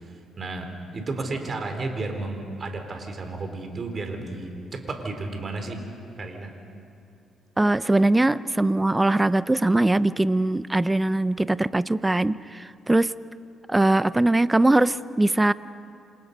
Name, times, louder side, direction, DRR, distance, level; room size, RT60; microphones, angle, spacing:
voice 1, 0.4-5.8 6.2-6.5, right 3 dB, 40° right, 4 dB, 4.0 m, -32 dB
voice 2, 7.6-13.1 13.7-15.5, right 2 dB, 15° right, 16 dB, 0.6 m, -21 dB
29.0 x 26.5 x 5.4 m, 2.6 s
cardioid pair, 90°, 0 cm